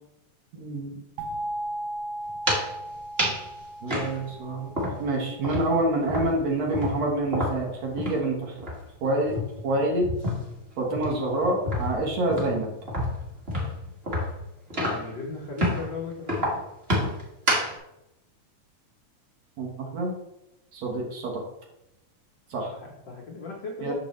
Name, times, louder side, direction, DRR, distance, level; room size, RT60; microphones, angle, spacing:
voice 1, 0.5-1.0 3.8-4.7 5.0-8.6 9.0-9.4 9.6-10.1 10.8-12.7 19.6-20.1 20.7-21.4 22.5-22.7 23.8-23.9, right 2 dB, 60° right, -1 dB, 2.2 m, -27 dB
sound 1, 1.2-5.9, right 1 dB, 90° right, 1.1 m, -37 dB
sound 2, 2.3-2.7 3.2-3.5 3.9-5.2 5.4-8.3 8.6-8.8 9.2-10.6 10.9-15.2 15.6-15.9 16.3-17.8, equal, 35° right, 1.0 m, -29 dB
voice 2, 14.8-16.5 22.7-23.9, left 4 dB, 80° left, -3 dB, 1.0 m, -37 dB
6.5 x 6.4 x 3.1 m, 0.88 s
omnidirectional pair, 3.6 m